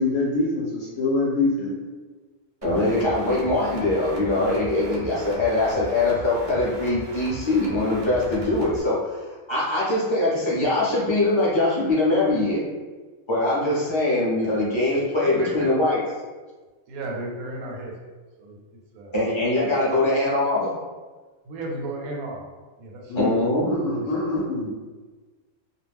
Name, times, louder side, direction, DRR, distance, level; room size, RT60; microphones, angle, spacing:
voice 1, 0.0-1.8 23.1-23.3 23.7-24.7, left 3 dB, 70° left, -4 dB, 0.9 m, -24 dB
voice 2, 2.6-9.2 9.5-12.6 13.3-16.0 19.1-20.7 23.2-23.7, left 2 dB, 30° left, -8 dB, 0.5 m, -22 dB
sound 1, 2.6-8.8, right 2 dB, 65° right, 0.6 m, -38 dB
voice 3, 15.2-15.7 16.9-17.9 18.4-18.6 18.9-19.1 19.9-20.0 21.5-22.4 22.8-23.2 23.7-24.1, right 1 dB, 90° right, 0 dB, 1.0 m, -34 dB
2.3 x 2.0 x 3.4 m, 1.3 s
omnidirectional pair, 1.5 m